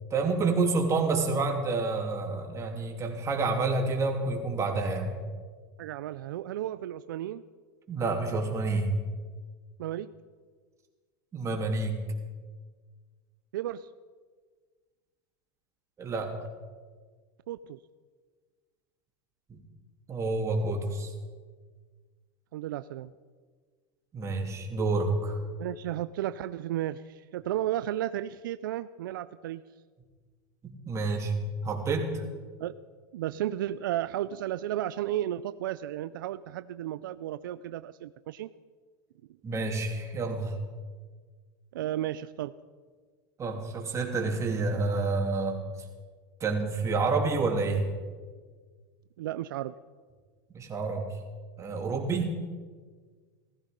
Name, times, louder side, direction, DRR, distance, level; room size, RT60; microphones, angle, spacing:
voice 1, 0.1-5.1 7.9-8.9 11.3-12.0 16.0-16.4 19.5-19.6 20.1-21.1 24.1-25.4 30.6-31.3 31.6-32.2 39.4-40.6 43.4-45.6 46.4-47.8 50.5-51.0 51.6-52.3, right 3 dB, 30° right, 2 dB, 3.1 m, -28 dB
voice 2, 5.8-7.4 9.8-10.1 13.5-13.9 17.5-17.8 22.5-23.1 25.6-29.6 32.6-32.7 33.1-38.5 41.7-42.5 49.2-49.7, right 12 dB, 85° right, 14 dB, 0.4 m, -33 dB
17.0 x 14.5 x 5.3 m, 1.5 s
supercardioid pair, 110°, 11 cm